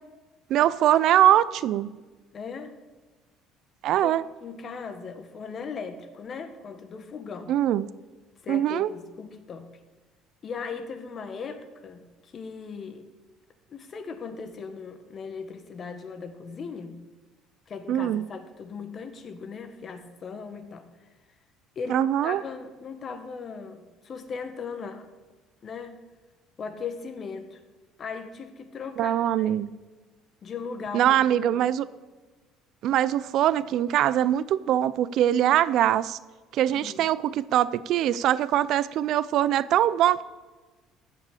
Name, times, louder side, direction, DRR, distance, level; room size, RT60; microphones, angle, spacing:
voice 1, 0.5-1.9 3.8-4.2 7.5-7.9 8.5-8.9 17.9-18.3 21.9-22.4 29.0-29.7 30.9-31.8 32.8-36.2 36.5-40.2, right 11 dB, 65° right, 17 dB, 0.5 m, -22 dB
voice 2, 2.3-2.8 4.0-7.5 8.4-9.7 10.4-13.1 13.7-17.0 17.7-21.1 21.7-25.1 25.6-26.0 26.6-27.6 28.0-29.7 30.4-31.2 31.5-31.7 36.7-37.1, left 5 dB, 45° left, 9 dB, 1.6 m, -38 dB
15.0 x 5.9 x 8.5 m, 1.3 s
supercardioid pair, 80°, 0 cm